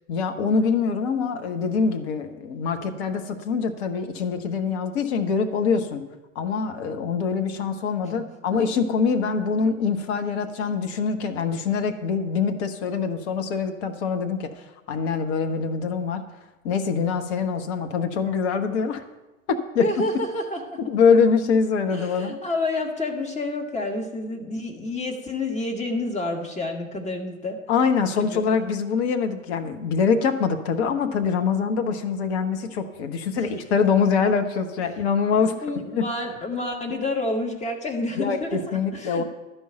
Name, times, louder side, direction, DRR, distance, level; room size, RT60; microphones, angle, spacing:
voice 1, 0.1-6.0 6.3-16.2 16.6-19.0 19.5-19.9 20.9-22.3 27.7-36.1 38.2-39.2, left 5 dB, 55° left, 7 dB, 1.2 m, -24 dB
voice 2, 19.8-20.8 21.9-27.6 28.2-28.5 33.4-33.5 35.5-39.2, left 2 dB, 15° left, 3 dB, 1.7 m, -29 dB
12.0 x 5.5 x 8.8 m, 1.1 s
figure-of-eight pair, 85°, 40 cm